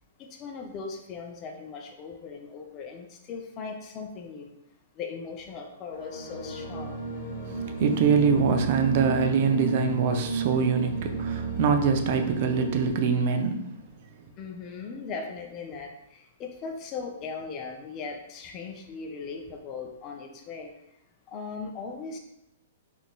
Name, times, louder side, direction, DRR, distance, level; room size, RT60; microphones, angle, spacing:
voice 1, 0.2-4.5 5.0-7.0 14.4-20.7 21.3-22.2, left 5 dB, 30° left, 2 dB, 0.4 m, -38 dB
sound 1, 5.9-12.9, right 4 dB, 70° left, 0.7 m, -32 dB
voice 2, 7.8-13.6, right 5 dB, 50° right, 6 dB, 0.3 m, -24 dB
3.6 x 2.4 x 2.2 m, 0.83 s
hypercardioid pair, 140°, 0 cm